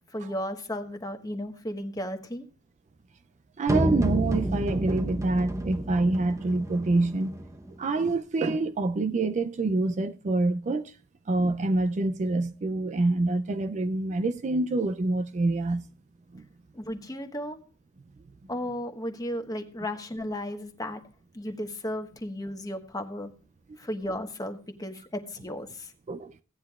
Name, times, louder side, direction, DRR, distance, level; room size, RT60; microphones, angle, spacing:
voice 1, 0.1-2.4 16.7-17.6 18.5-21.0 21.3-23.3 23.8-25.9, left 1 dB, 20° left, 1.2 m, -34 dB
voice 2, 3.6-7.4 7.8-11.0 11.3-15.9 16.3-16.4 26.1-26.4, right 2 dB, 35° right, 0.4 m, -26 dB
sound 1, 3.7-7.7, right 1 dB, 15° right, 0.8 m, -30 dB
16.5 x 9.7 x 2.3 m
head